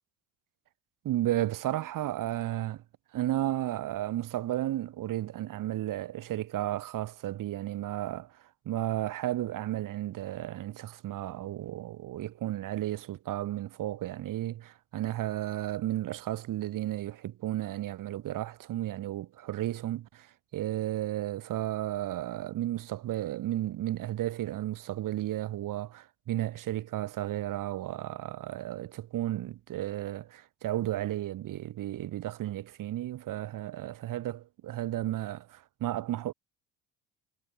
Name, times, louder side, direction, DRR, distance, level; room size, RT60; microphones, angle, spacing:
voice 1, 1.0-2.8 3.1-8.3 8.6-36.3, right 13 dB, 65° right, 6.7 m, -33 dB
supercardioid pair, 80°, 35 cm